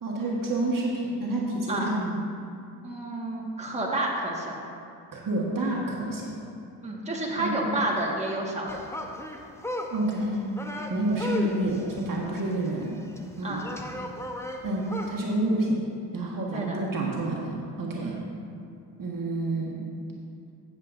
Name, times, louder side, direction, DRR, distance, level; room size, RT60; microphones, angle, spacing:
voice 1, 0.0-2.1 5.1-6.4 7.4-7.7 9.9-10.4 10.9-13.0 13.4-13.6 14.6-15.9 16.1-18.2 19.0-19.8, right 1 dB, 45° right, -3 dB, 1.6 m, -28 dB
voice 2, 2.8-4.5 6.8-8.8 13.4-13.6 16.5-16.8 18.0-18.3, right 1 dB, 15° right, -3 dB, 1.7 m, -30 dB
sound 1, 8.7-15.2, left 1 dB, 5° left, 0.9 m, -36 dB
13.5 x 7.5 x 2.6 m, 2.6 s
supercardioid pair, 60°, 45 cm